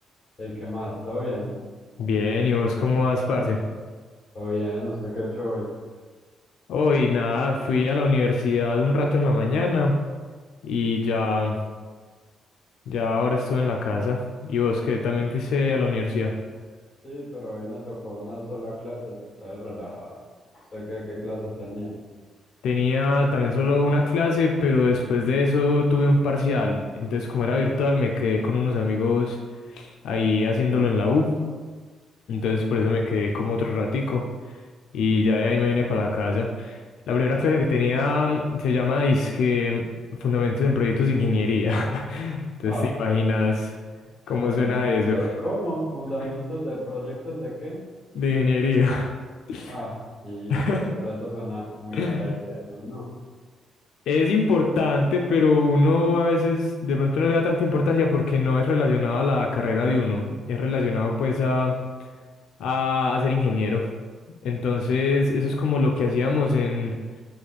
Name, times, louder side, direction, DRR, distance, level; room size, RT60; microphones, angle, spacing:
voice 1, 0.4-1.5 4.3-5.6 17.0-20.2 20.5-21.9 42.7-42.9 44.2-47.8 49.7-50.0 50.2-53.1, equal, 10° left, -7 dB, 1.3 m, -32 dB
voice 2, 2.0-3.6 6.7-9.9 10.6-11.6 12.9-16.4 22.6-29.4 29.7-31.4 32.3-34.2 34.9-36.8 37.1-39.9 40.2-43.7 44.3-45.2 48.2-49.1 49.5-49.7 50.5-50.9 51.9-52.4 54.1-61.8 62.6-63.8 64.4-66.9, left 3 dB, 70° left, 1 dB, 0.3 m, -23 dB
3.1 x 2.4 x 4.0 m, 1.5 s
cardioid pair, 180°, 0 cm